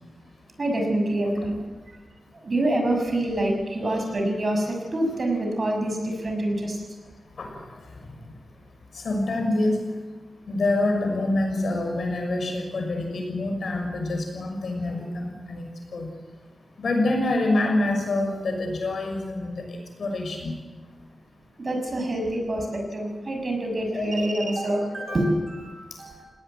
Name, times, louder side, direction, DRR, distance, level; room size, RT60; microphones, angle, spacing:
voice 1, 0.6-1.5 1.9-2.0 2.4-6.8 21.6-26.2, right 1 dB, 45° right, 3 dB, 6.5 m, -26 dB
voice 2, 7.4-7.7 8.9-9.9 10.5-15.6 15.9-16.1 16.8-20.6 23.9-24.3 24.7-24.8 25.1-25.2, left 2 dB, 80° left, 3 dB, 6.2 m, -26 dB
19.0 x 18.5 x 9.4 m, 1.3 s
wide cardioid pair, 95°, 0 cm